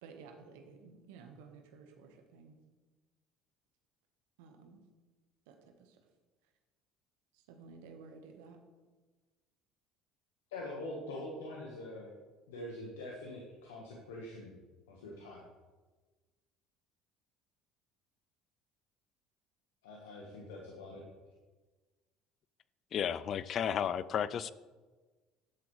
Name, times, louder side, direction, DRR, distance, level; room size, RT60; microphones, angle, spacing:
voice 1, 0.0-2.6 4.4-4.8 5.5-6.0 7.3-8.6, right 5 dB, 75° right, 4 dB, 1.3 m, -54 dB
voice 2, 10.5-12.1 12.5-14.6 14.9-15.5 19.8-21.0, left 1 dB, 85° left, -2 dB, 1.4 m, -44 dB
voice 3, 22.9-24.5, left 8 dB, 50° left, 17 dB, 0.4 m, -33 dB
11.5 x 7.7 x 3.2 m, 1.3 s
hypercardioid pair, 70°, 0 cm